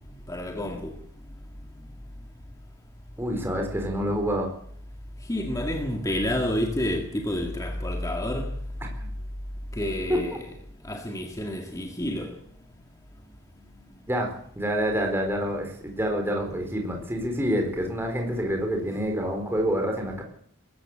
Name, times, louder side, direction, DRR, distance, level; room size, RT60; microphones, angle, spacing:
voice 1, 0.3-1.0 5.3-8.5 9.7-10.5 10.8-12.4, left 1 dB, 15° left, 2.0 m, -29 dB
voice 2, 3.2-4.5 8.8-9.1 10.1-10.2 14.1-14.3 14.6-20.2, equal, 10° right, 4.4 m, -27 dB
21.5 x 14.5 x 9.0 m
head